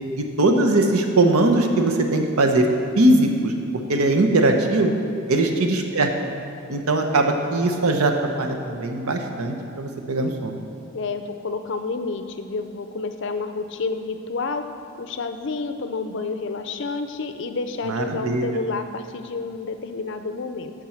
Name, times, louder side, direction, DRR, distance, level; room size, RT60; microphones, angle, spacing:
voice 1, 0.2-2.6 3.0-3.5 3.9-4.9 5.3-6.1 6.7-8.1 8.4-10.6 17.8-18.6, right 2 dB, 85° right, 4 dB, 0.8 m, -20 dB
voice 2, 5.3-5.7 10.9-14.7 15.0-20.7, left 4 dB, 55° left, 8 dB, 0.5 m, -29 dB
7.4 x 5.3 x 7.2 m, 2.6 s
head